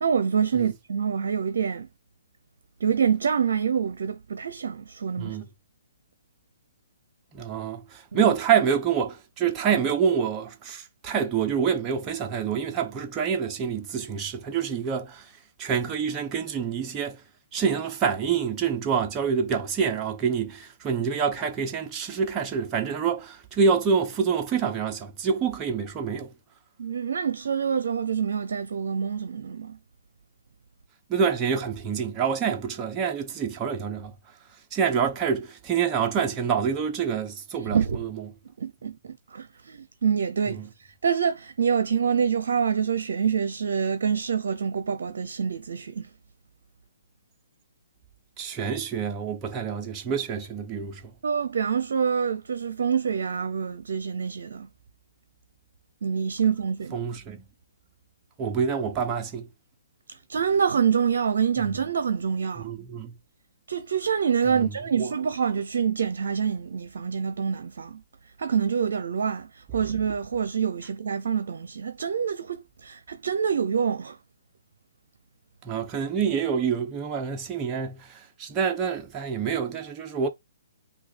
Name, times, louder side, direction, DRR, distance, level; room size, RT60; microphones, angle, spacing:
voice 1, 0.0-1.9 2.8-5.4 8.1-8.3 26.8-29.8 37.6-38.0 38.6-46.1 51.2-54.7 56.0-57.1 60.3-62.7 63.7-68.0 68.4-74.2, right 7 dB, 70° right, 0.6 m, -26 dB
voice 2, 7.3-15.3 15.6-17.2 17.5-26.3 31.1-34.1 34.7-38.3 40.6-40.7 48.4-51.0 56.9-57.4 58.4-59.5 62.6-63.1 64.5-64.7 65.0-65.1 75.6-80.3, right 6 dB, 20° right, 0.7 m, -27 dB
5.8 x 2.3 x 3.9 m
hypercardioid pair, 140°, 0 cm